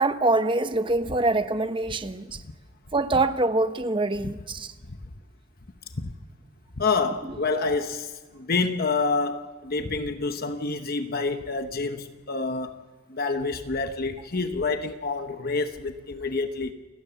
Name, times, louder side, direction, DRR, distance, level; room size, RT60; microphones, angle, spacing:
voice 1, 0.0-2.4 2.9-4.7, right 2 dB, 25° right, 1.0 m, -24 dB
voice 2, 6.8-12.7 13.1-16.7, left 3 dB, 45° left, 1.0 m, -28 dB
29.0 x 17.5 x 7.0 m
head